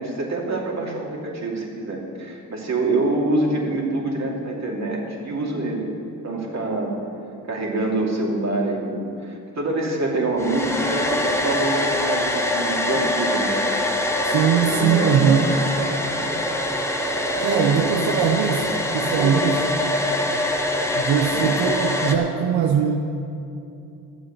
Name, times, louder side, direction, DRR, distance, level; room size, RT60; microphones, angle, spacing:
voice 1, 0.0-5.9 6.2-6.9 7.5-13.6 14.5-15.3 17.3-17.7 19.1-19.5 21.3-21.5, right 2 dB, 45° right, -1 dB, 2.8 m, -26 dB
Domestic sounds home sounds, 10.4-22.2, left 1 dB, 5° left, 1.3 m, -24 dB
voice 2, 14.3-15.5 17.4-19.7 20.9-23.0, right 7 dB, 90° right, 3 dB, 0.9 m, -21 dB
12.0 x 7.6 x 8.1 m, 2.6 s
cardioid pair, 75°, 36 cm